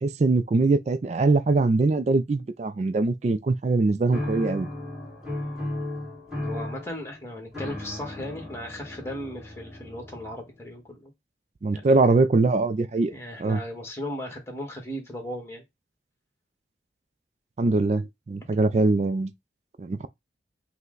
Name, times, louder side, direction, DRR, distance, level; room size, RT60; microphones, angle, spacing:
voice 1, 0.0-4.7 11.6-13.1 13.4-13.6 17.6-19.3 19.8-20.1, right 3 dB, 40° right, 0.3 m, -22 dB
sound 1, 4.1-10.6, left 1 dB, 5° right, 1.7 m, -35 dB
voice 2, 6.4-11.1 11.7-11.9 13.1-15.6, equal, 15° left, 1.4 m, -36 dB
5.5 x 2.1 x 3.8 m
head